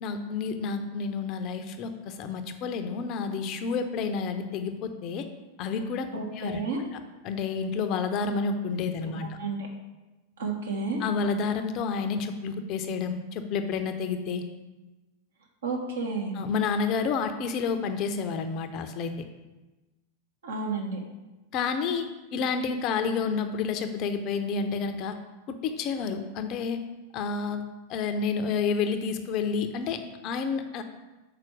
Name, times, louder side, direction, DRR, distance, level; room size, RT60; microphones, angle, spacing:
voice 1, 0.0-5.3 5.6-6.1 6.3-6.6 7.2-9.4 11.0-14.5 16.3-19.2 21.5-25.2 25.5-26.8 27.1-27.6 27.9-30.8, left 5 dB, 40° left, 7 dB, 0.6 m, -30 dB
voice 2, 6.1-6.8 9.1-9.7 10.4-11.0 15.6-16.4 20.4-21.0, right 4 dB, 65° right, -1 dB, 1.5 m, -31 dB
5.9 x 4.4 x 6.4 m, 1.1 s
figure-of-eight pair, 90°, 0 cm